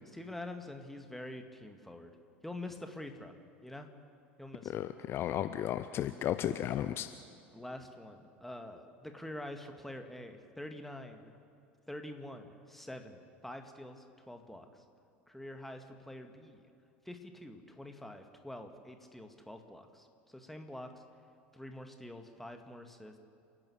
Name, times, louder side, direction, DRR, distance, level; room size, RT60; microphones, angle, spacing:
voice 1, 0.1-2.1 2.4-3.3 3.6-3.9 4.4-4.8 5.1-5.2 7.5-11.3 11.9-14.8 15.3-16.7 17.1-21.0 21.5-23.2, left 1 dB, 5° left, 5 dB, 2.0 m, -46 dB
voice 2, 4.6-7.1, left 11 dB, 40° left, 11 dB, 0.6 m, -34 dB
29.5 x 11.0 x 8.6 m, 2.4 s
figure-of-eight pair, 70°, 6 cm